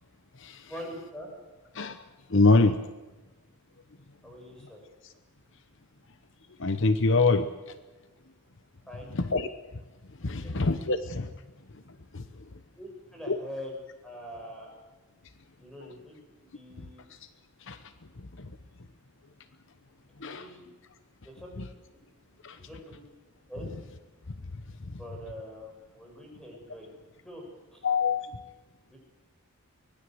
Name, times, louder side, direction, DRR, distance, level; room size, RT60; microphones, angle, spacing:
voice 1, 0.7-1.3 4.2-4.8 8.9-9.1 10.4-10.5 12.8-13.8 14.0-14.8 15.6-17.0 20.3-20.6 21.2-21.8 22.6-23.0 23.5-23.7 24.9-26.9 27.2-27.4 27.7-27.9 28.9-29.0, equal, 5° left, 0 dB, 7.2 m, -44 dB
voice 2, 2.3-2.8 6.6-7.5 9.1-9.5 10.2-11.3 12.1-12.2 13.3-13.4 17.7-17.8 20.2-20.5 22.4-22.6 27.8-28.4, left 3 dB, 55° left, 11 dB, 1.0 m, -24 dB
24.5 x 19.5 x 7.9 m, 1.1 s
head